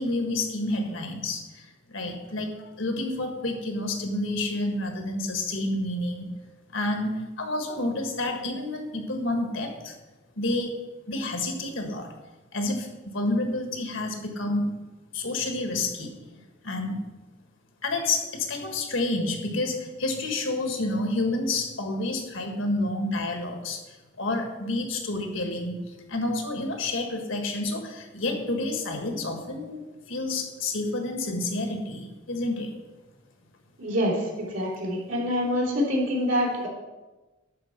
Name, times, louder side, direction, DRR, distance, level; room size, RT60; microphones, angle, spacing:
voice 1, 0.0-1.6 1.9-6.3 6.7-9.9 10.4-10.7 11.1-12.1 12.5-14.7 15.1-16.2 16.6-17.0 17.8-23.8 24.2-25.8 26.1-29.8 30.1-32.7, left 2 dB, 75° left, 4 dB, 1.6 m, -29 dB
voice 2, 33.8-34.2 34.5-36.7, equal, 75° right, -4 dB, 3.3 m, -25 dB
11.0 x 4.6 x 6.6 m, 1.2 s
head